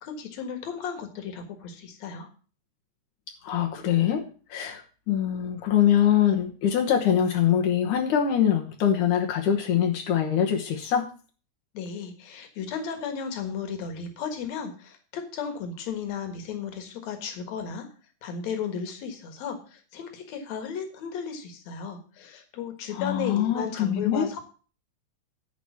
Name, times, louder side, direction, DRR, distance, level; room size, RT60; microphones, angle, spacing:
voice 1, 0.0-2.3 11.7-17.9 18.2-24.5, left 6 dB, 65° left, 7 dB, 2.7 m, -34 dB
voice 2, 3.4-4.2 4.5-4.8 5.1-11.1 23.0-24.3, left 9 dB, 85° left, 2 dB, 2.6 m, -23 dB
11.0 x 4.9 x 7.1 m, 0.38 s
omnidirectional pair, 3.5 m